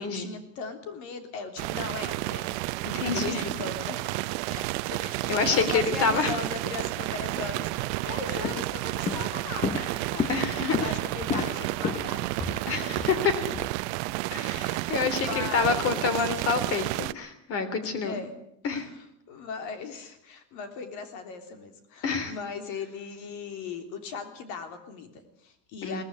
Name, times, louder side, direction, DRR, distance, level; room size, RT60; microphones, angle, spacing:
voice 1, 0.0-4.0 4.5-12.7 13.3-13.4 14.8-16.3 18.0-18.3 18.6-26.0, left 5 dB, 60° left, 7 dB, 3.4 m, -39 dB
sound 1, 1.6-17.1, right 19 dB, 75° right, 0.7 m, -31 dB
voice 2, 2.8-3.4 5.3-6.3 10.3-11.0 12.7-13.3 14.3-18.2 18.6-18.9 22.0-22.3 25.8-26.0, left 5 dB, 40° left, 12 dB, 3.4 m, -27 dB
Walk footsteps, 7.9-8.1 8.4-8.8 9.1-13.7, left 6 dB, 20° left, 0.8 m, -32 dB
19.5 x 14.5 x 9.7 m, 0.75 s
cardioid pair, 155°, 35 cm